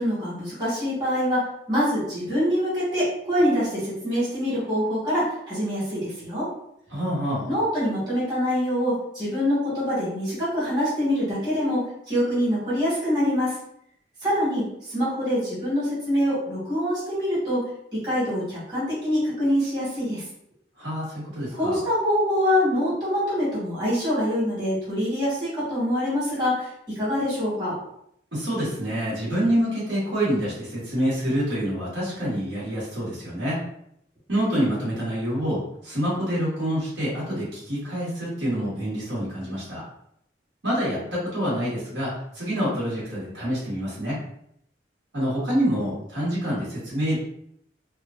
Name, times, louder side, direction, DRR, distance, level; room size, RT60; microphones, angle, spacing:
voice 1, 0.0-6.5 7.5-13.5 14.2-17.6 17.9-20.2 21.5-27.7, equal, 25° right, -9 dB, 1.4 m, -25 dB
voice 2, 6.9-7.5 20.8-21.8 28.3-33.6 34.3-39.8 40.6-44.2 45.1-47.2, equal, 75° right, -7 dB, 1.4 m, -27 dB
3.0 x 2.3 x 2.4 m, 0.72 s
head